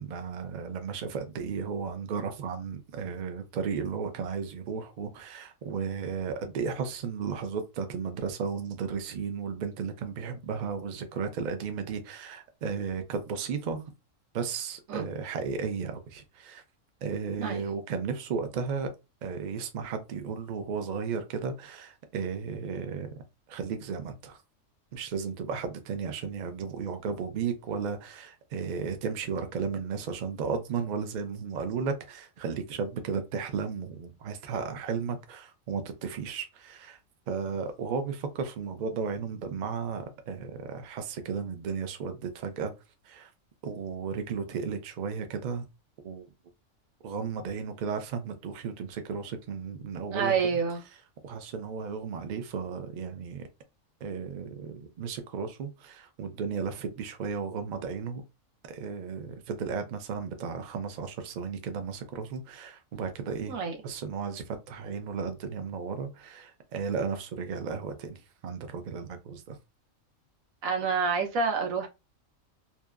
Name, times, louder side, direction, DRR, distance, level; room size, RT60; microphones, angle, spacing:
voice 1, 0.0-13.8 14.3-16.6 17.0-18.9 19.2-23.1 23.5-24.4 24.9-37.0 37.3-42.7 43.1-43.3 43.6-45.7 46.0-46.3 47.0-50.6 51.2-53.5 54.0-58.2 58.6-63.6 63.8-69.6, right 6 dB, 75° right, 0.4 m, -34 dB
voice 2, 50.1-50.8 63.5-63.8 70.6-71.9, right 5 dB, 90° right, 1.1 m, -28 dB
2.8 x 2.2 x 2.3 m
omnidirectional pair, 1.4 m